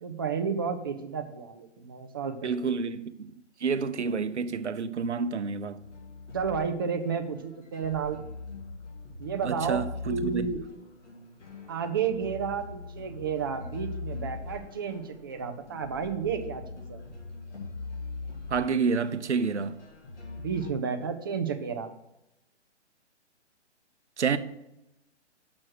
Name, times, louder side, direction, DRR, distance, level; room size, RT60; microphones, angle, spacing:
voice 1, 0.0-2.5 6.3-8.2 9.2-10.6 11.7-17.0 20.4-21.9, right 6 dB, 20° right, 0.4 m, -32 dB
voice 2, 2.4-3.3 3.6-5.8 9.4-10.5 18.5-19.8 24.2-24.4, right 5 dB, 70° right, 0.8 m, -29 dB
sound 1, 5.8-20.7, left 3 dB, 75° left, 2.6 m, -42 dB
6.3 x 6.2 x 6.2 m
figure-of-eight pair, 130°, 36 cm